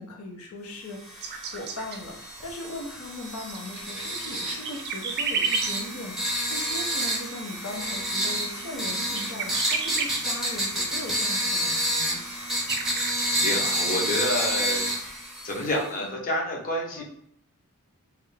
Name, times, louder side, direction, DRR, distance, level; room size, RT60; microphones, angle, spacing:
voice 1, 0.0-6.2 6.5-12.2 15.7-16.2 17.0-17.1, left 2 dB, 75° left, 1 dB, 0.7 m, -39 dB
sound 1, 1.0-15.9, equal, ahead, 0.7 m, -29 dB
sound 2, 1.2-2.5 2.8-14.9, right 5 dB, 50° right, 0.4 m, -34 dB
voice 2, 13.3-14.8 15.4-17.0, equal, 40° left, -2 dB, 0.8 m, -28 dB
3.2 x 2.4 x 3.2 m, 0.69 s
head